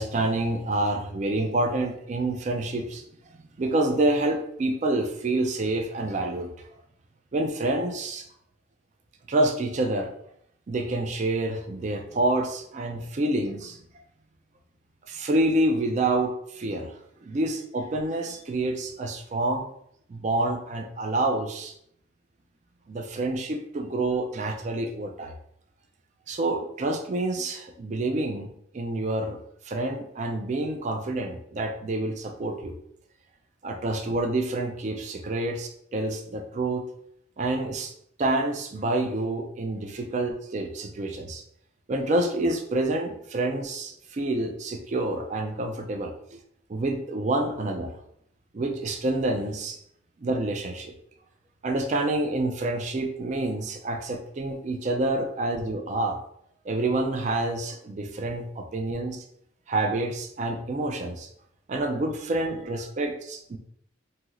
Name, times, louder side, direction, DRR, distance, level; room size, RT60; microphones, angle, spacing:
voice 1, 0.0-3.0 3.6-6.5 7.3-8.3 9.3-10.1 10.7-13.8 15.1-16.9 17.2-19.7 20.1-21.8 22.9-25.3 26.3-29.4 29.7-32.8 33.6-36.8 37.4-37.9 38.2-41.4 41.9-46.1 46.7-47.9 48.5-49.8 50.2-50.9 51.6-56.2 56.6-59.2 59.7-61.3 61.7-63.6, right 2 dB, 40° right, 4 dB, 0.3 m, -27 dB
2.7 x 2.4 x 3.1 m, 0.71 s
head